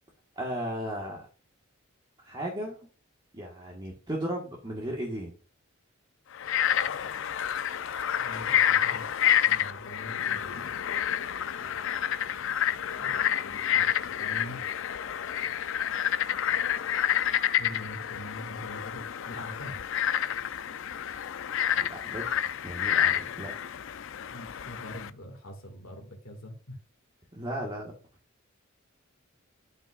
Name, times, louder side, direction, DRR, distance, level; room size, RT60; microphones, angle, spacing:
voice 1, 0.3-1.3 2.2-2.8 3.3-5.3 21.8-22.3 22.6-23.5 27.3-27.9, equal, 25° right, -2 dB, 1.5 m, -35 dB
Frog, 6.3-25.1, left 10 dB, 65° left, 0.5 m, -29 dB
voice 2, 8.1-9.1 9.4-10.7 13.0-13.9 14.2-14.6 17.6-19.8 24.3-26.8, left 1 dB, 90° left, 1 dB, 2.1 m, -43 dB
12.0 x 5.4 x 2.4 m, 0.36 s
head